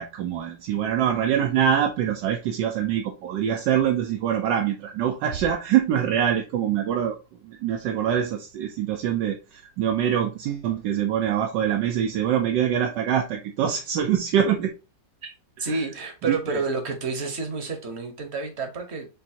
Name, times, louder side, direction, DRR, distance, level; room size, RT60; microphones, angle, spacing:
voice 1, 0.0-7.2 7.4-14.7 15.6-15.8 16.3-16.6, right 9 dB, 80° right, 1.2 m, -24 dB
voice 2, 15.6-19.1, right 3 dB, 45° right, 1.1 m, -29 dB
7.1 x 2.6 x 2.7 m
omnidirectional pair, 1.9 m